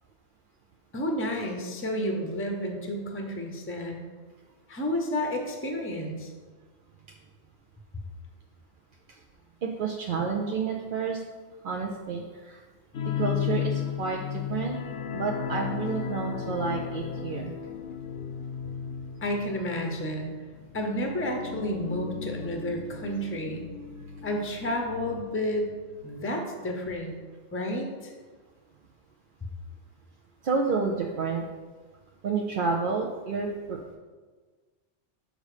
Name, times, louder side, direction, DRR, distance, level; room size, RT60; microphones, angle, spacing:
voice 1, 0.9-4.0 4.7-6.3 19.2-20.3 20.7-23.7 24.2-25.7 26.0-27.1 27.5-28.1, left 1 dB, 15° left, 3 dB, 0.7 m, -31 dB
voice 2, 9.6-11.2 11.6-12.6 13.2-14.8 15.1-17.5 30.4-31.4 32.2-34.0, right 5 dB, 55° right, 0 dB, 0.7 m, -30 dB
sound 1, 12.9-26.2 26.5-26.7 27.1-27.2, left 8 dB, 75° left, 1.0 m, -35 dB
6.5 x 5.2 x 4.9 m, 1.4 s
omnidirectional pair, 1.2 m